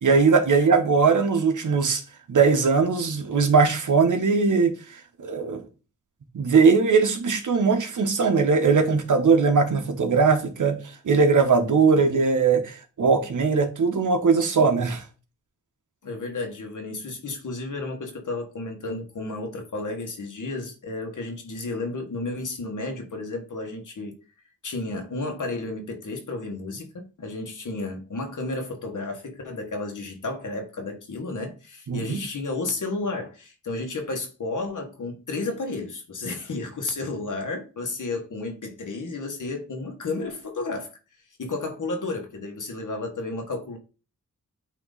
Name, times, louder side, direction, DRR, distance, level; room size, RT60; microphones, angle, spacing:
voice 1, 0.0-2.0 2.3-5.6 6.3-15.0 31.9-32.2, right 5 dB, 75° right, 1.2 m, -20 dB
voice 2, 16.0-24.1 24.6-40.9 41.4-43.8, left 3 dB, 75° left, 1.7 m, -32 dB
8.8 x 3.0 x 4.0 m
wide cardioid pair, 90°, 31 cm